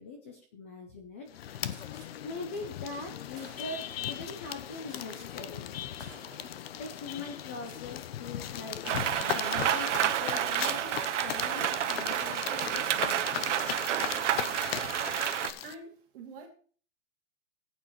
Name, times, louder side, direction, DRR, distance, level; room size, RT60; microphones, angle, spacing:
voice 1, 0.0-1.6 2.2-5.9 6.7-9.0 9.3-13.5, left 3 dB, 10° left, 4 dB, 0.4 m, -42 dB
sound 1, 1.3-15.7, left 11 dB, 55° left, 0.8 m, -38 dB
Gunshot gunfire, 1.7-2.1 2.9-3.0 3.3-4.0 4.8-5.3 5.6-5.7 6.0-6.7 7.5-7.9, right 5 dB, 10° right, 2.9 m, -54 dB
Rain, 8.8-15.5, right 11 dB, 75° right, 1.2 m, -30 dB
voice 2, 15.6-16.5, right 3 dB, 45° right, 1 dB, 2.6 m, -46 dB
15.5 x 8.6 x 3.1 m, 0.41 s
supercardioid pair, 170°, 36 cm